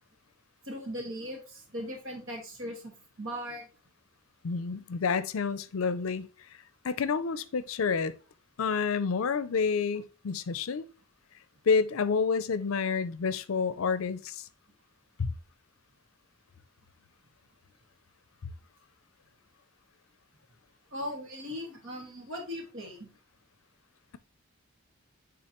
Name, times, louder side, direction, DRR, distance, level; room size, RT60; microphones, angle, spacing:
voice 1, 0.7-2.9 3.2-3.7 20.9-23.1, equal, 60° right, 1.9 m, -38 dB
voice 2, 4.4-6.3 6.8-8.1 8.6-10.9 11.7-14.5 15.2-15.3, left 5 dB, 75° left, 0.5 m, -29 dB
8.7 x 3.8 x 3.0 m
head